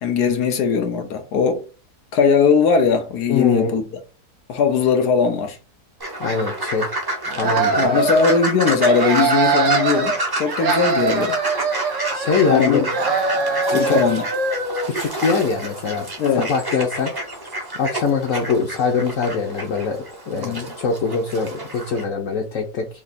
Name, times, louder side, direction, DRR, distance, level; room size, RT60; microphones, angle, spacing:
voice 1, 0.0-1.6 2.1-3.8 4.5-5.6 7.3-7.5 7.8-11.4 12.5-12.9 13.7-14.2 16.2-16.5 20.4-20.7, left 5 dB, 85° left, 1.4 m, -19 dB
voice 2, 3.3-3.7 6.2-6.9 7.4-8.0 12.1-12.8 13.7-14.0 14.8-16.1 16.3-17.1 17.7-22.9, left 5 dB, 65° left, 1.1 m, -23 dB
sound 1, 6.0-22.0, right 1 dB, 20° right, 0.7 m, -29 dB
sound 2, 7.3-8.4 8.8-10.2 10.5-12.6 12.9-14.9, right 4 dB, 60° right, 1.2 m, -22 dB
3.6 x 2.8 x 4.0 m
omnidirectional pair, 1.6 m